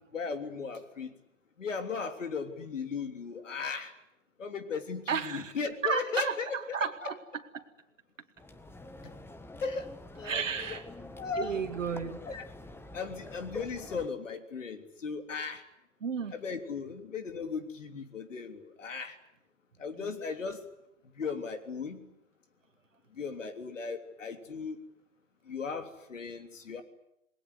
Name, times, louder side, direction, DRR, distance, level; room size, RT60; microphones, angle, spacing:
voice 1, 0.1-1.2 1.6-3.9 4.4-6.8 9.6-10.8 11.2-11.6 12.3-12.4 12.9-15.6 16.3-19.2 19.8-20.6 21.2-22.1 23.1-24.9 25.5-26.8, left 5 dB, 80° left, 8 dB, 3.4 m, -37 dB
voice 2, 5.1-5.5 5.8-7.6 10.2-10.8 11.4-12.2 16.0-16.3 20.0-20.1, right 6 dB, 85° right, 6 dB, 2.2 m, -33 dB
sound 1, 8.4-14.1, left 2 dB, 5° left, 1.4 m, -47 dB
28.0 x 20.5 x 9.8 m, 0.84 s
hypercardioid pair, 115°, 37 cm